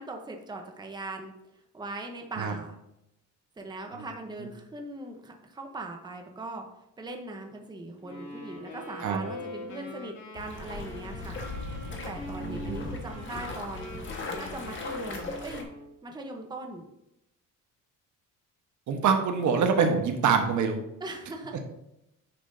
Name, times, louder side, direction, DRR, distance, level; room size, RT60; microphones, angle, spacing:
voice 1, 0.0-1.3 1.7-2.8 3.6-6.6 7.0-11.5 11.9-14.0 14.4-15.7 16.0-16.8 21.0-21.6, right 2 dB, 15° right, 2 dB, 0.9 m, -40 dB
Wind instrument woodwind instrument, 8.0-16.0, left 1 dB, 65° left, 2.5 m, -43 dB
sound 1, 10.4-15.6, left 3 dB, 40° left, 1.5 m, -38 dB
voice 2, 12.4-12.9 18.9-20.8, right 6 dB, 70° right, 4 dB, 1.3 m, -25 dB
9.8 x 5.9 x 2.7 m, 0.86 s
cardioid pair, 135°, 31 cm